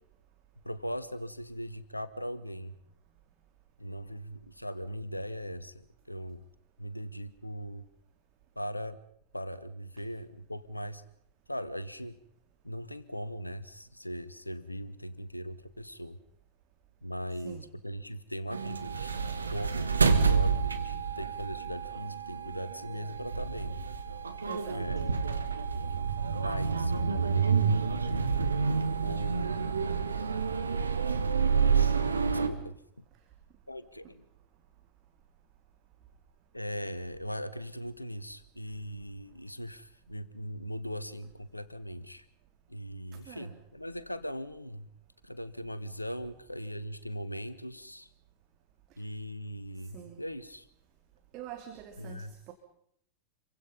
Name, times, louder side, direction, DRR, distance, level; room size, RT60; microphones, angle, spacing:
voice 1, 0.6-2.7 3.8-6.4 6.8-7.8 8.5-9.0 9.3-11.0 11.5-12.2 12.6-16.2 17.0-19.1 19.5-23.8 24.7-25.1 26.3-27.8 29.0-29.9 31.5-31.9 32.3-32.7 33.7-34.2 36.5-42.2 42.7-44.9 45.2-48.1 49.0-50.7 52.0-52.3, equal, 85° left, 15 dB, 1.3 m, -39 dB
sound 1, 18.5-32.5, right 5 dB, 75° right, 1.8 m, -29 dB
voice 2, 24.5-24.9 43.3-43.6 49.9-50.2 51.3-52.5, right 9 dB, 40° right, 5 dB, 2.9 m, -45 dB
28.0 x 24.0 x 5.5 m, 0.69 s
figure-of-eight pair, 90°, 0 cm